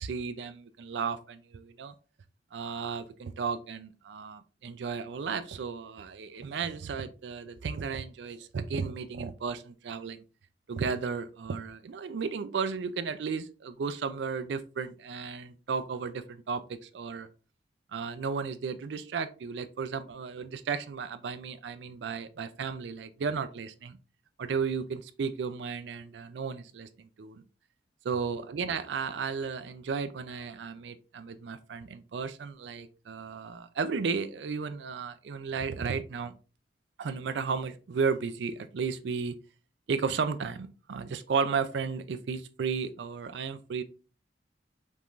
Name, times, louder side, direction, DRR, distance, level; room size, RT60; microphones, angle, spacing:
voice 1, 0.0-1.9 2.5-10.2 10.7-17.3 17.9-24.0 24.4-27.4 28.0-36.3 37.0-39.4 39.9-43.8, right 5 dB, 75° right, 10 dB, 0.4 m, -34 dB
5.4 x 3.1 x 2.4 m, 0.35 s
head